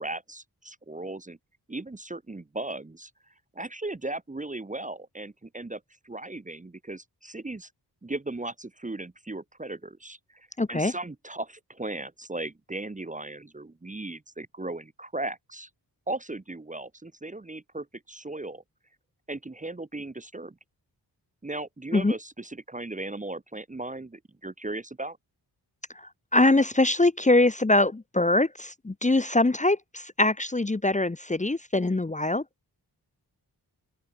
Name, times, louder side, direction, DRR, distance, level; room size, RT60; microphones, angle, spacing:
voice 1, 0.0-1.4 1.7-3.1 3.5-7.7 8.0-15.7 16.1-18.6 19.3-20.6 21.4-25.2, right 2 dB, 20° right, 1.1 m, -37 dB
voice 2, 10.6-10.9 21.9-22.1 26.3-32.4, left 2 dB, 20° left, 1.0 m, -23 dB
open air
wide cardioid pair, 100°, 41 cm